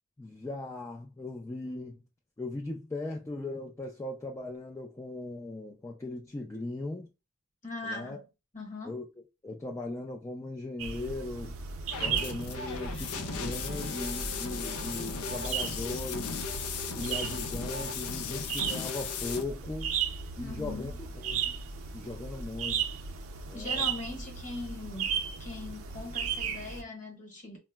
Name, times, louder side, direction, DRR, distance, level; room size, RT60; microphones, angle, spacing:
voice 1, 0.2-2.0 2.4-7.1 7.8-8.2 8.8-9.0 9.4-11.6 12.0-16.4 16.9-20.0 20.4-20.9 21.2-21.5 21.9-22.8 23.5-23.9, left 2 dB, 15° left, 0.3 m, -38 dB
voice 2, 7.6-8.3 8.5-9.0 20.4-21.0 23.5-27.6, left 3 dB, 35° left, 1.0 m, -41 dB
sound 1, 10.8-26.8, right 6 dB, 65° right, 0.5 m, -36 dB
sound 2, 11.9-19.4, left 5 dB, 90° left, 0.4 m, -36 dB
Guitar, 12.6-17.4, left 2 dB, 60° left, 0.8 m, -49 dB
4.4 x 2.0 x 2.2 m
head